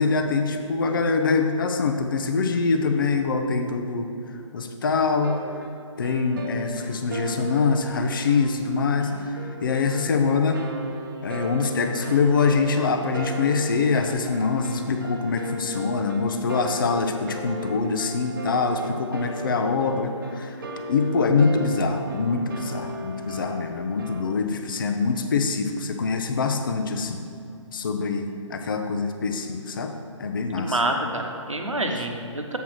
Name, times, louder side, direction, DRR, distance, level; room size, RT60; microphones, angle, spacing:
voice 1, 0.0-4.1 4.5-5.4 6.0-10.6 11.2-20.6 20.9-27.2 27.7-29.9 30.2-30.8 32.0-32.1, left 4 dB, 40° left, 5 dB, 0.5 m, -24 dB
sound 1, 5.2-24.2, right 1 dB, 40° right, 0.8 m, -37 dB
voice 2, 30.5-32.6, right 1 dB, 75° right, 3 dB, 1.0 m, -27 dB
7.3 x 4.7 x 6.0 m, 2.6 s
figure-of-eight pair, 140°, 16 cm